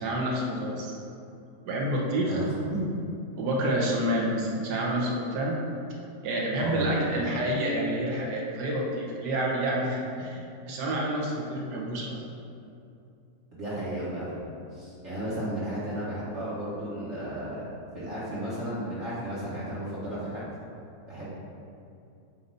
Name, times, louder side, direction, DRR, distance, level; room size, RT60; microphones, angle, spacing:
voice 1, 0.0-0.9 1.6-2.4 3.4-5.6 6.2-12.2, right 1 dB, 85° right, -3 dB, 1.6 m, -28 dB
voice 2, 2.3-2.9 6.6-7.4 13.5-14.4 14.7-17.6 17.9-20.5 21.1-21.3, right 1 dB, 45° right, -10 dB, 1.4 m, -33 dB
7.6 x 2.7 x 5.3 m, 2.6 s
omnidirectional pair, 1.7 m